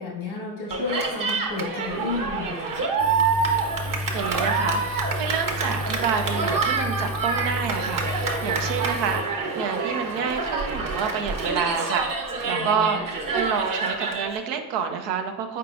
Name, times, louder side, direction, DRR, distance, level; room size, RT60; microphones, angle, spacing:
voice 1, 0.0-2.9 12.5-13.0, left 3 dB, 85° left, -2 dB, 1.4 m, -32 dB
Cheering, 0.7-14.4, right 4 dB, 50° right, 0.9 m, -27 dB
Engine, 3.0-9.2, left 2 dB, 10° right, 0.5 m, -32 dB
voice 2, 4.1-13.0 13.3-15.6, right 7 dB, 85° right, 6 dB, 0.6 m, -28 dB
4.6 x 3.7 x 2.4 m, 1.2 s
hypercardioid pair, 45°, 43 cm